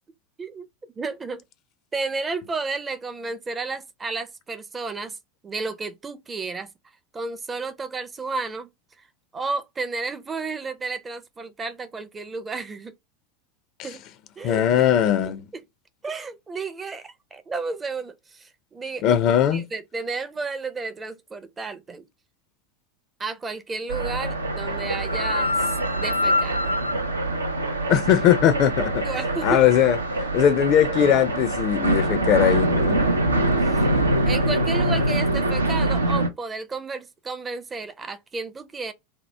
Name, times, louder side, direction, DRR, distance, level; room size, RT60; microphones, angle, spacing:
voice 1, 1.0-1.4 1.9-5.2 5.4-6.7 7.1-8.7 9.3-12.9 13.8-14.0 14.4-14.6 16.0-19.1 19.5-22.1 23.2-26.7 29.0-29.6 33.7-33.9 34.3-38.9, right 3 dB, 20° right, 0.5 m, -32 dB
voice 2, 14.4-15.4 19.0-19.7 27.9-29.1 29.4-30.0 30.3-33.0, left 10 dB, 45° left, 0.4 m, -19 dB
sound 1, 23.9-36.3, right 1 dB, 90° right, 0.5 m, -24 dB
2.8 x 2.0 x 3.2 m
figure-of-eight pair, 85°, 0 cm